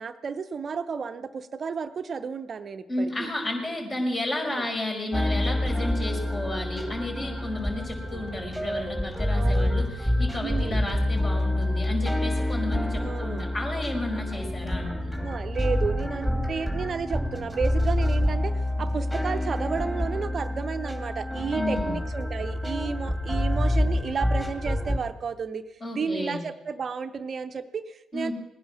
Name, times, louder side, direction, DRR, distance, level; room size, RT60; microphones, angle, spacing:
voice 1, 0.0-3.3 4.5-4.7 8.1-8.2 9.3-9.8 10.4-10.8 13.0-13.5 15.2-25.7 25.9-28.3, right 5 dB, 50° right, 11 dB, 0.7 m, -32 dB
voice 2, 2.9-15.2 21.5-22.0 25.8-26.4 28.1-28.3, left 1 dB, 40° left, 0 dB, 5.3 m, -32 dB
sound 1, 5.1-25.0, left 1 dB, 5° left, 2.8 m, -27 dB
19.5 x 10.0 x 6.1 m, 1.0 s
hypercardioid pair, 45°, 0 cm